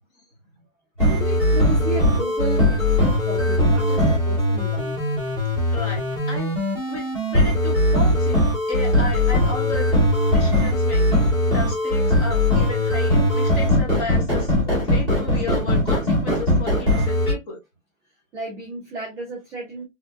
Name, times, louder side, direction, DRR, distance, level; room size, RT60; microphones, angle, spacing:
sound 1, 1.0-17.3, left 1 dB, 15° left, 1.7 m, -20 dB
voice 1, 1.1-4.9 18.3-19.8, right 2 dB, 5° right, 0.6 m, -33 dB
voice 2, 5.7-6.5 6.9-17.6, left 4 dB, 30° left, 1.7 m, -34 dB
4.2 x 3.5 x 2.4 m
hypercardioid pair, 165°, 40 cm